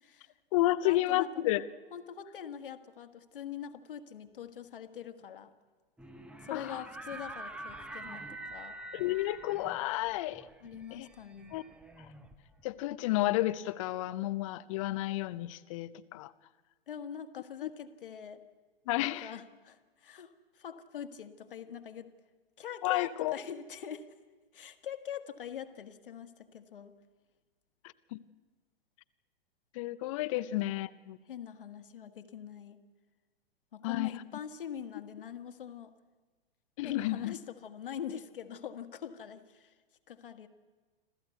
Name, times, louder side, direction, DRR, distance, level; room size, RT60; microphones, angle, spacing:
voice 1, 0.0-0.3 0.8-1.3 1.9-5.5 6.4-8.8 10.6-11.5 16.9-18.4 18.9-22.1 22.6-24.1 24.5-26.9 30.3-30.8 31.3-32.8 33.7-35.9 36.8-39.7 40.1-40.5, left 8 dB, 60° left, 8 dB, 1.6 m, -44 dB
voice 2, 0.5-1.6 6.5-6.8 8.9-10.5 10.9-11.1 11.5-11.6 12.0-12.1 12.6-16.3 17.6-17.7 18.9-19.3 22.8-23.4 28.1-28.2 29.7-31.2 33.8-34.1 36.8-37.3, left 16 dB, 35° left, 17 dB, 0.6 m, -31 dB
sound 1, 6.0-12.8, right 1 dB, 5° right, 0.9 m, -46 dB
26.5 x 14.5 x 8.2 m, 1.3 s
figure-of-eight pair, 110°, 30 cm